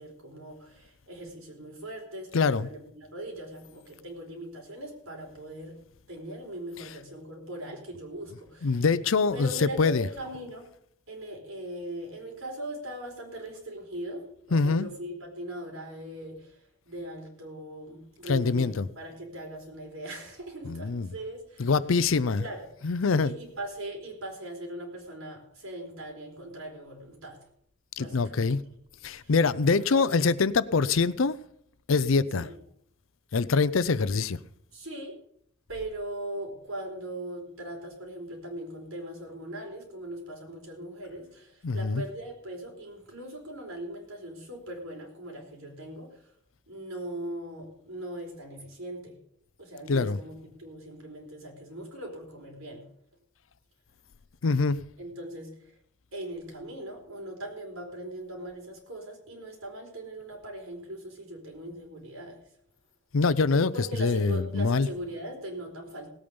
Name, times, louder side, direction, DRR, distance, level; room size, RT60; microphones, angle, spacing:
voice 1, 0.0-5.8 6.1-8.9 9.3-10.6 11.1-21.7 22.4-22.7 23.2-27.4 28.0-28.6 29.1-29.3 29.6-30.3 32.3-32.6 34.7-35.2 35.7-46.3 46.7-49.2 49.6-52.9 55.0-55.7 56.1-62.4 63.7-66.1, right 1 dB, 85° right, 4.4 m, -40 dB
voice 2, 2.3-2.7 8.6-10.1 14.5-14.9 18.3-18.9 20.6-21.1 21.6-22.4 22.8-23.3 28.0-28.6 29.0-31.4 31.9-32.5 33.3-34.4 41.6-42.0 49.9-50.2 54.4-54.8 63.1-64.9, left 4 dB, 70° left, 0.5 m, -24 dB
18.0 x 8.7 x 5.3 m
head